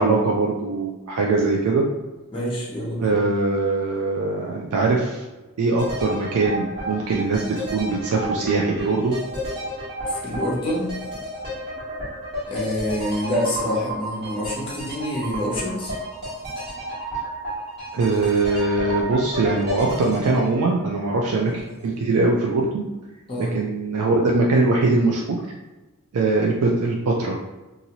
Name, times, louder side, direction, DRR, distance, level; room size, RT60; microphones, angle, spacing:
voice 1, 0.0-1.9 3.0-5.2 5.6-7.4 7.7-9.2 17.9-22.8 23.4-25.4 26.1-27.4, right 3 dB, 80° right, -1 dB, 0.4 m, -21 dB
voice 2, 2.3-3.1 10.0-10.9 12.5-15.9 23.3-23.5, left 1 dB, 25° left, -4 dB, 0.7 m, -26 dB
sound 1, 5.8-21.7 22.0-22.1, equal, 50° right, 1.4 m, -32 dB
2.7 x 2.5 x 2.9 m, 1.1 s
head